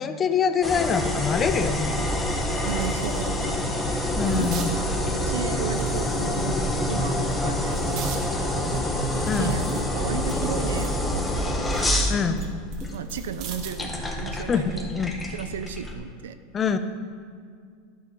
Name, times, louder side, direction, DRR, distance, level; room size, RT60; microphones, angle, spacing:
voice 1, 0.0-2.1 4.2-4.7 9.3-9.5 12.1-12.5 14.5-14.6 14.9-15.1 16.5-16.8, left 6 dB, 30° left, 10 dB, 0.7 m, -24 dB
sound 1, 0.6-15.9, left 1 dB, 10° left, 1.3 m, -27 dB
sound 2, 1.4-1.5 2.0-3.5 3.8-4.7 5.7-6.6 7.2-8.2 8.8-11.0 11.4-13.9 15.3-15.5, right 8 dB, 55° right, 1.2 m, -43 dB
voice 2, 2.7-12.1 12.9-14.9 15.3-16.4, right 7 dB, 85° right, 12 dB, 0.5 m, -35 dB
11.0 x 6.7 x 5.4 m, 2.1 s
hypercardioid pair, 105°, 0 cm